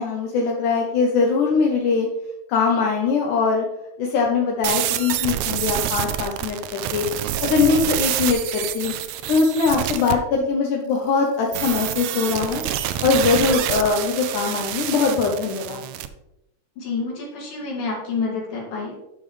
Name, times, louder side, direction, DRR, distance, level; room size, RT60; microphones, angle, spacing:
voice 1, 0.0-2.1 2.5-3.7 4.0-7.0 7.4-8.9 9.3-12.6 13.0-15.8, left 5 dB, 75° left, -1 dB, 2.3 m, -21 dB
sound 1, 4.6-10.2 11.5-16.1, right 12 dB, 80° right, 1.7 m, -27 dB
voice 2, 16.8-18.9, left 4 dB, 90° left, -3 dB, 4.0 m, -28 dB
12.0 x 5.3 x 3.2 m, 0.91 s
omnidirectional pair, 3.8 m